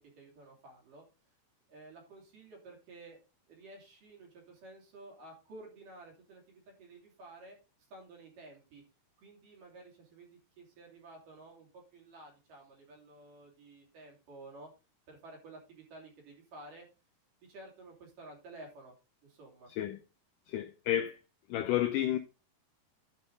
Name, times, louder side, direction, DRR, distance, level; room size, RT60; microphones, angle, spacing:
voice 1, 0.2-1.0 1.7-3.2 3.5-7.6 7.9-8.8 9.2-14.7 15.1-16.9 17.5-18.9 19.2-19.7, right 2 dB, 55° right, 4.5 m, -52 dB
voice 2, 20.5-21.2 21.5-22.2, left 12 dB, 90° left, 1.8 m, -31 dB
12.0 x 5.5 x 3.9 m
omnidirectional pair, 4.6 m